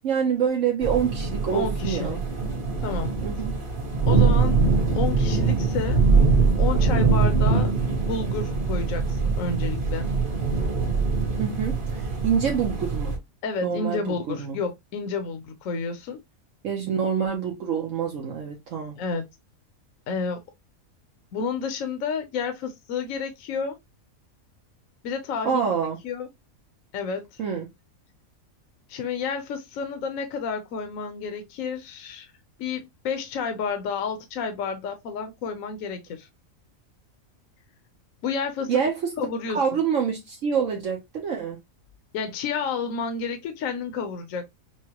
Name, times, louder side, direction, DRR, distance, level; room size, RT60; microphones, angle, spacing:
voice 1, 0.0-2.2 3.2-3.6 11.4-13.2 13.6-14.6 16.6-19.0 25.4-26.0 27.4-27.7 38.7-39.1 39.5-41.6, right 7 dB, 65° right, 1.2 m, -26 dB
sound 1, 0.8-13.2, right 4 dB, 40° right, 1.6 m, -23 dB
voice 2, 1.5-2.2 2.8-3.1 4.1-4.6 4.9-6.0 6.6-7.7 8.0-10.1 13.4-16.2 19.0-19.2 20.1-20.4 21.3-23.8 25.0-25.6 26.0-26.3 26.9-27.4 28.9-32.3 32.6-36.3 38.2-38.8 39.2-39.6 42.1-44.4, left 5 dB, 75° left, 1.1 m, -30 dB
6.1 x 2.2 x 2.8 m
omnidirectional pair, 1.4 m